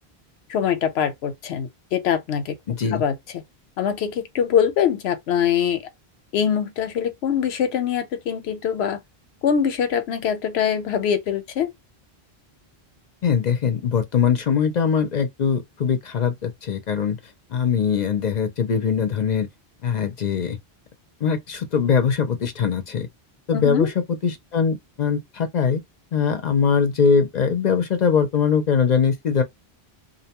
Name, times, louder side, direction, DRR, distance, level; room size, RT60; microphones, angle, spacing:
voice 1, 0.5-2.5 2.9-3.1 3.8-5.8 6.3-9.0 9.4-11.7 23.5-23.9, left 8 dB, 90° left, 0.9 m, -23 dB
voice 2, 2.7-3.0 13.2-17.2 17.5-19.5 19.8-20.6 21.2-23.1 23.5-23.9 24.2-25.8 26.1-29.4, left 6 dB, 50° left, 0.6 m, -21 dB
2.6 x 2.2 x 2.8 m
omnidirectional pair, 1.1 m